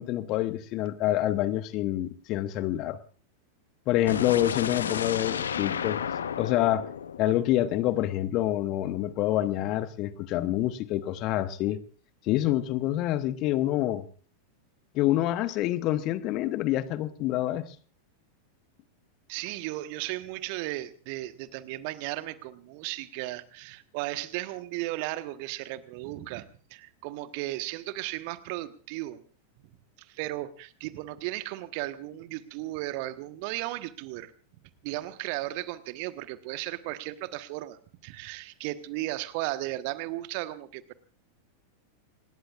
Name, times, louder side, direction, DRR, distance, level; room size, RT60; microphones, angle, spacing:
voice 1, 0.0-3.0 3.9-6.0 6.4-6.9 7.2-11.8 12.3-14.0 14.9-17.7, left 14 dB, 40° left, 1.1 m, -27 dB
sound 1, 4.1-8.0, left 7 dB, 65° left, 0.9 m, -32 dB
voice 2, 19.3-26.4 26.7-29.2 30.0-34.3 34.8-40.9, right 17 dB, 45° right, 1.3 m, -35 dB
27.5 x 19.5 x 2.5 m
figure-of-eight pair, 90°, 0 cm